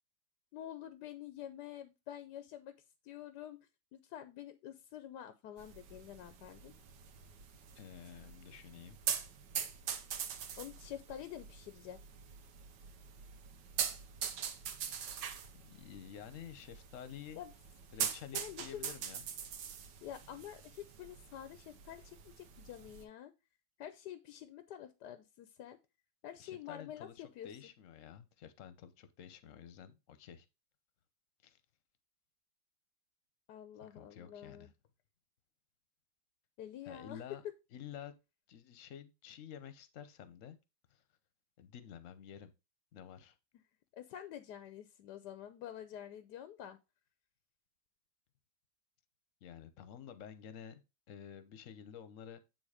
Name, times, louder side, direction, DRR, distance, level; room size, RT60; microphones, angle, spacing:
voice 1, 0.5-2.7 3.0-3.6 3.9-6.7 10.6-12.0 17.4-17.5 18.3-18.9 20.0-23.3 23.8-25.8 26.2-27.5 33.5-34.7 36.6-37.2 43.9-46.8, left 11 dB, 75° left, 1.2 m, -48 dB
sound 1, 5.6-23.0, right 8 dB, 80° right, 1.6 m, -43 dB
voice 2, 7.7-9.0 15.5-17.4 17.9-19.2 26.4-30.5 31.4-31.6 33.8-34.7 36.8-37.4 37.7-38.2 38.5-40.6 40.9-41.0 41.6-42.5 42.9-43.4 49.4-52.4, left 8 dB, 55° left, 1.1 m, -50 dB
9.0 x 3.8 x 4.9 m
omnidirectional pair, 1.9 m